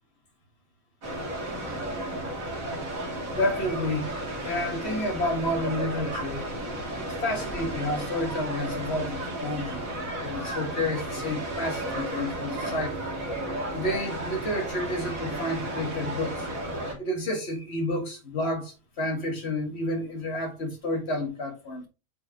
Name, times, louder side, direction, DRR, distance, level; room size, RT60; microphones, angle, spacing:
sound 1, 1.0-16.9, right 1 dB, 90° right, 2.6 m, -33 dB
voice 1, 3.3-6.5 7.0-9.8 10.2-13.1 13.7-16.5 17.0-21.9, left 1 dB, 50° left, 2.1 m, -30 dB
7.8 x 4.7 x 2.9 m
omnidirectional pair, 1.4 m